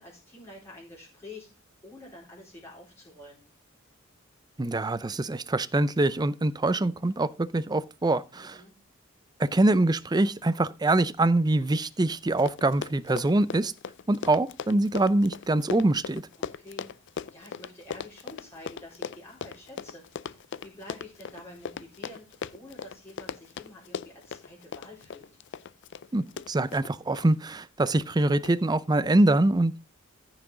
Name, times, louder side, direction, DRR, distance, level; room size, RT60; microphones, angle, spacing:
voice 1, 0.0-1.5 1.8-3.4 8.3-8.8 16.4-16.9 17.3-25.3, left 1 dB, 15° left, 4.5 m, -48 dB
voice 2, 4.6-8.6 9.4-13.7 14.1-16.2 26.1-29.9, right 2 dB, 20° right, 0.5 m, -24 dB
Run, 12.0-12.1 12.3-27.3 27.9-28.1 28.4-28.5, left 6 dB, 60° left, 0.4 m, -39 dB
14.5 x 6.0 x 3.9 m
head